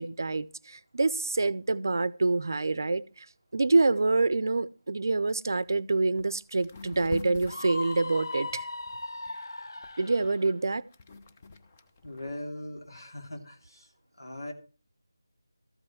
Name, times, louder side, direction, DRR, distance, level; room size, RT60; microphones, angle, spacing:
voice 1, 0.0-3.3 3.5-8.7 10.0-10.8, right 3 dB, 55° right, 0.6 m, -26 dB
sound 1, 5.7-5.8 6.1-6.3 6.6-9.3 9.8-12.3, left 3 dB, 25° left, 0.8 m, -45 dB
Screaming, 7.5-10.4, left 3 dB, 70° left, 0.6 m, -38 dB
voice 2, 12.0-13.9 14.2-14.5, left 1 dB, 90° left, 2.9 m, -40 dB
13.5 x 5.4 x 7.2 m
figure-of-eight pair, 165°, 2 cm